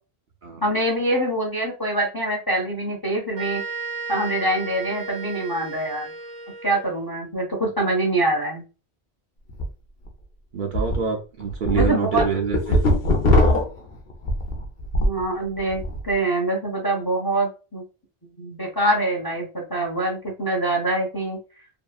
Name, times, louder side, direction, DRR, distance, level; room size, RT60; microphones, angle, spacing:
voice 1, 0.6-3.6 4.1-6.1 6.6-8.6 11.7-12.2 15.0-17.8 18.4-21.4, right 1 dB, 30° left, -2 dB, 0.5 m, -24 dB
sound 1, 3.4-7.0, right 4 dB, 85° right, 1.0 m, -34 dB
sound 2, 9.5-9.6 10.1-10.2 10.7-11.0 11.4-15.2 15.6-16.0, left 1 dB, 70° left, 0.9 m, -20 dB
voice 2, 10.5-12.8, right 6 dB, 55° right, 1 dB, 0.7 m, -26 dB
2.8 x 2.4 x 2.3 m, 0.33 s
omnidirectional pair, 1.1 m